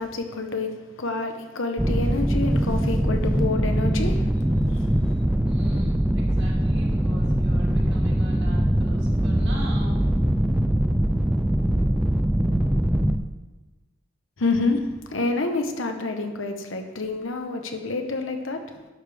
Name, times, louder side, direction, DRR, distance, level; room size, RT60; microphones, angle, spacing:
voice 1, 0.0-5.2 14.4-18.9, left 3 dB, 80° left, 5 dB, 1.0 m, -28 dB
sound 1, 1.8-13.2, right 1 dB, 5° right, 0.4 m, -22 dB
voice 2, 5.4-10.1, right 1 dB, 60° right, -3 dB, 2.4 m, -42 dB
11.0 x 6.5 x 3.5 m, 1.2 s
head